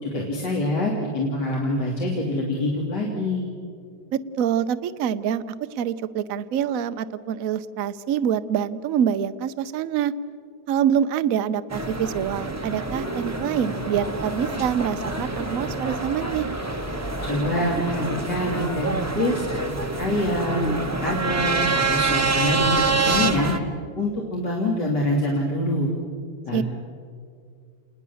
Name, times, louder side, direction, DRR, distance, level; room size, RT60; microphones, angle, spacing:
voice 1, 0.0-3.5 17.2-18.9 19.1-19.5 20.0-20.7 21.0-21.6 21.9-23.5 24.0-25.9 26.5-26.6, left 1 dB, 55° left, -2 dB, 3.2 m, -25 dB
voice 2, 4.1-5.4 5.8-10.1 10.7-16.5 26.5-26.6, right 9 dB, 60° right, 12 dB, 0.9 m, -25 dB
sound 1, 11.7-23.6, right 3 dB, 10° right, 0.8 m, -26 dB
29.0 x 20.5 x 7.0 m, 2.3 s
omnidirectional pair, 2.3 m